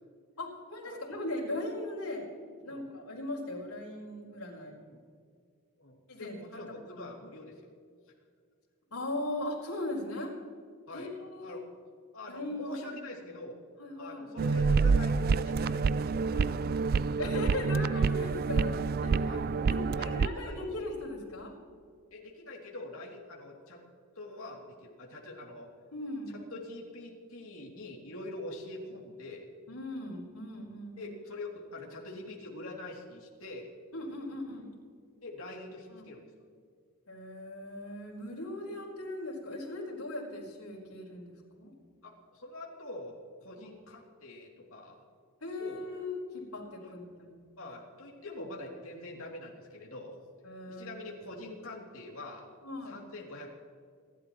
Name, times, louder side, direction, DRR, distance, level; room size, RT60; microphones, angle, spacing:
voice 1, 0.4-2.2 2.6-4.7 6.1-6.6 6.9-7.1 8.9-10.3 10.9-11.6 12.3-13.0 13.8-14.3 17.2-21.5 25.9-26.4 29.7-31.1 33.9-34.7 35.9-36.1 37.1-41.7 45.4-47.4 48.4-48.5 50.4-51.1 52.6-53.0, left 1 dB, 90° left, -3 dB, 4.8 m, -39 dB
voice 2, 5.8-7.6 10.9-11.1 11.4-11.6 12.1-13.6 14.0-16.7 17.2-17.4 19.2-19.5 19.8-20.6 22.1-23.8 24.1-25.7 26.5-29.5 31.0-33.7 35.2-36.3 42.0-45.0 45.6-45.9 46.8-46.9 47.6-50.2 50.7-52.5 52.9-53.5, left 2 dB, 70° left, -2 dB, 3.1 m, -45 dB
sound 1, 14.4-20.3, right 4 dB, 45° right, 0.3 m, -27 dB
28.5 x 12.0 x 3.2 m, 2.2 s
head